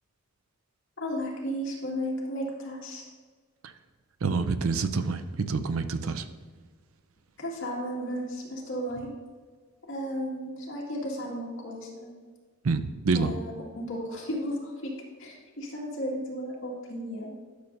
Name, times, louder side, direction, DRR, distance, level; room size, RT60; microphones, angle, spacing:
voice 1, 1.0-3.0 7.4-9.1 9.9-12.1 13.1-14.9 15.2-17.3, equal, 60° left, -3 dB, 2.1 m, -34 dB
voice 2, 4.2-6.2 12.6-13.3, right 4 dB, 80° right, 11 dB, 0.5 m, -27 dB
11.5 x 6.5 x 2.7 m, 1.5 s
head